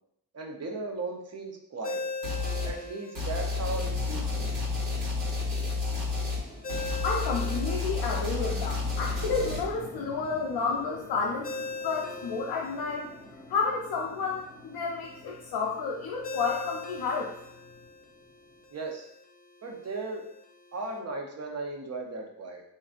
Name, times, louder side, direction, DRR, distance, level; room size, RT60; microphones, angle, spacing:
voice 1, 0.3-2.0 2.6-4.6 18.7-19.1 19.6-20.2 20.7-22.6, right 3 dB, 40° right, 1 dB, 0.7 m, -36 dB
Ringtone, 1.8-21.0, left 3 dB, 25° left, 0.4 m, -43 dB
sound 1, 2.2-2.8 3.1-9.6, left 3 dB, 80° right, 1.3 m, -31 dB
sound 2, 3.5-18.7, left 1 dB, 10° left, 0.9 m, -48 dB
voice 2, 7.0-13.1 13.5-17.3, left 4 dB, 75° left, -2 dB, 0.5 m, -31 dB
2.9 x 2.5 x 2.4 m, 0.75 s
cardioid pair, 55°, 39 cm